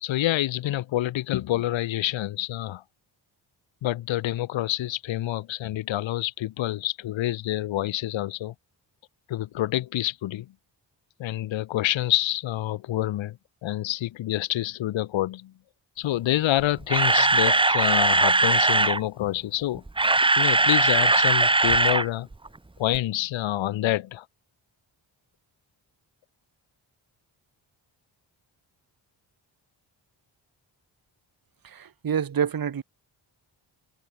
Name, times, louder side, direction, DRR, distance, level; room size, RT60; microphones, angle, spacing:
voice 1, 0.0-2.8 3.8-8.5 9.3-10.5 11.2-15.5 16.0-19.8 20.4-22.3 22.8-24.3, left 14 dB, 70° left, 0.6 m, -27 dB
Camera, 16.6-19.0 19.8-22.1 22.3-22.5 22.9-23.0, right 2 dB, 10° right, 0.6 m, -20 dB
voice 2, 31.6-32.8, right 8 dB, 45° right, 1.1 m, -27 dB
cardioid pair, 60°, 48 cm